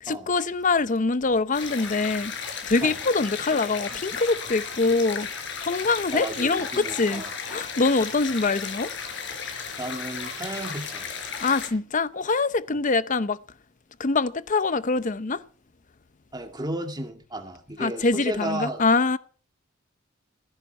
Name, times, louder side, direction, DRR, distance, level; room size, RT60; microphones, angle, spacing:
voice 1, 0.0-2.3 2.6-5.3 5.6-7.2 7.5-8.9 11.4-13.4 14.0-15.4 17.8-19.2, left 3 dB, 40° left, 0.7 m, -24 dB
sound 1, 1.5-11.7, left 6 dB, 60° left, 4.5 m, -35 dB
voice 2, 6.1-7.3 9.8-11.1 12.7-12.8 16.3-18.8, right 1 dB, 20° right, 2.0 m, -33 dB
17.0 x 15.0 x 4.5 m
head